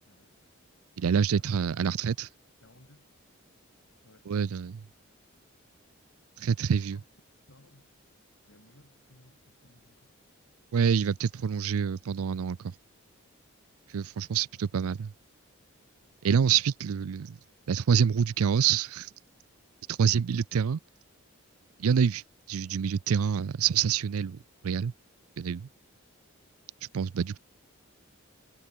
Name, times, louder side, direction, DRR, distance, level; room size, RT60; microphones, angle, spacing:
voice 1, 0.0-0.5 1.2-1.7 2.6-3.1 4.0-4.3 4.6-4.9 6.4-7.1 7.5-7.9 8.5-10.2, left 1 dB, 65° left, 2.9 m, -60 dB
voice 2, 1.0-2.3 4.3-4.8 6.4-7.0 10.7-12.7 13.9-15.1 16.2-17.4 17.7-19.1 19.9-20.8 21.8-22.2 22.5-24.9 25.4-25.7 26.9-27.4, right 7 dB, 90° right, 0.4 m, -26 dB
head